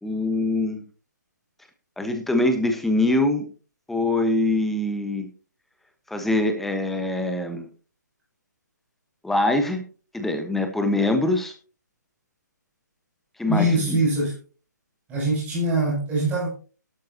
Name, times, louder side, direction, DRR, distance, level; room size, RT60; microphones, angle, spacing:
voice 1, 0.0-0.8 2.0-3.5 3.9-5.3 6.1-7.7 9.2-9.8 10.1-11.5 13.4-14.0, left 2 dB, ahead, 6 dB, 1.3 m, -23 dB
voice 2, 13.5-14.3 15.1-16.5, right 1 dB, 15° right, -6 dB, 7.6 m, -23 dB
13.0 x 12.0 x 2.9 m, 0.36 s
figure-of-eight pair, 135°, 10 cm